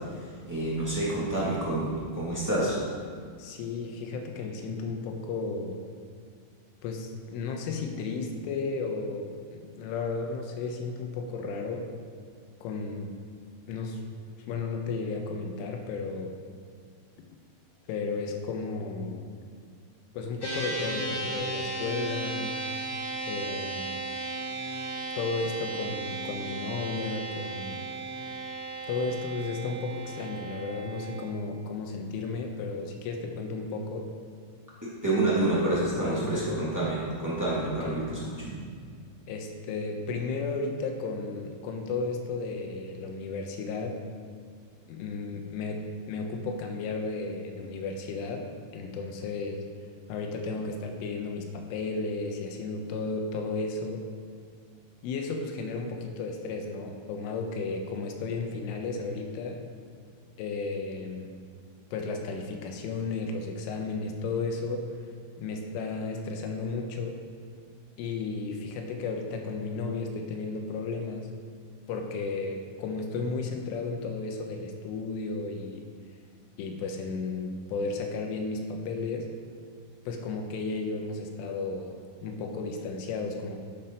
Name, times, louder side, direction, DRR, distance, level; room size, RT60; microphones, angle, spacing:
voice 1, 0.4-2.8 34.8-38.6, right 2 dB, 15° right, -8 dB, 0.6 m, -28 dB
voice 2, 3.4-5.8 6.8-11.9 12.6-13.2 13.7-14.0 14.5-16.4 17.9-19.4 20.1-22.6 23.3-24.0 25.2-27.8 28.9-34.1 36.0-36.7 37.6-38.1 39.3-44.0 44.9-49.6 50.1-54.1 55.0-59.7 60.4-61.3 61.9-64.9 65.4-67.2 68.0-71.3 71.9-75.9 76.6-79.3 80.1-82.0 82.2-83.6, left 3 dB, 85° left, 3 dB, 3.5 m, -34 dB
sound 1, 20.4-31.2, right 2 dB, 10° left, 1.4 m, -35 dB
12.0 x 7.5 x 5.5 m, 2.1 s
omnidirectional pair, 5.7 m